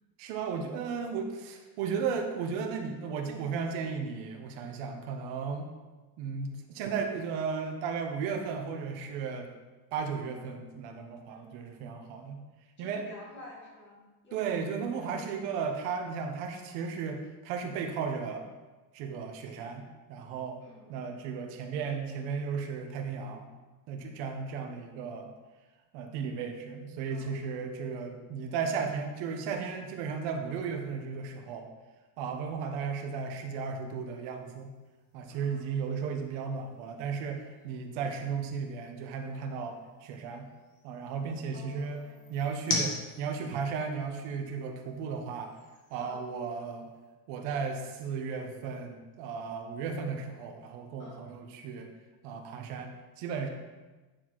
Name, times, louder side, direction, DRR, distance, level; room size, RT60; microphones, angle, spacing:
voice 1, 0.2-5.7 6.2-9.5 9.9-12.4 12.8-13.0 14.3-18.5 18.9-20.6 20.9-23.5 23.9-25.3 25.9-31.7 32.2-34.7 35.1-40.5 40.8-42.0 42.3-45.5 45.9-46.9 47.3-51.9 52.2-53.5, right 5 dB, 65° right, 4 dB, 1.2 m, -35 dB
voice 2, 12.8-14.4 14.7-15.2 20.6-21.0 27.1-27.4 35.3-35.7 41.5-42.4 46.0-46.2 51.0-51.2, left 1 dB, 25° left, -3 dB, 2.1 m, -51 dB
sound 1, 32.9-47.1, left 3 dB, 50° left, 1.5 m, -43 dB
9.6 x 4.3 x 4.7 m, 1.2 s
cardioid pair, 180°, 40 cm